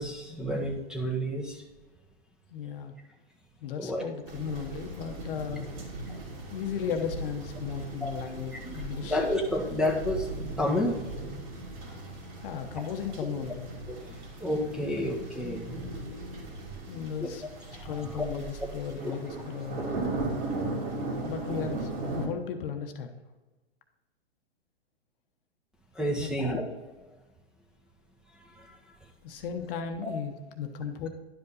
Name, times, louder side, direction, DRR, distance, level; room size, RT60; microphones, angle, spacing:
voice 1, 0.0-1.6 3.8-4.1 6.1-6.2 8.0-11.5 13.9-16.0 17.2-17.3 17.7-18.2 19.0-19.1 19.8-19.9 25.9-26.6 28.6-28.7 30.0-30.1, left 1 dB, ahead, 0 dB, 1.3 m, -31 dB
voice 2, 2.5-2.9 3.6-5.7 6.5-9.2 12.4-13.7 16.9-17.4 17.8-19.8 21.2-23.2 26.2-26.3 29.2-31.1, left 7 dB, 60° left, 6 dB, 1.1 m, -35 dB
sound 1, 4.3-22.3, right 2 dB, 45° right, 2.6 m, -38 dB
11.0 x 5.4 x 4.0 m, 1.2 s
hypercardioid pair, 120°, 32 cm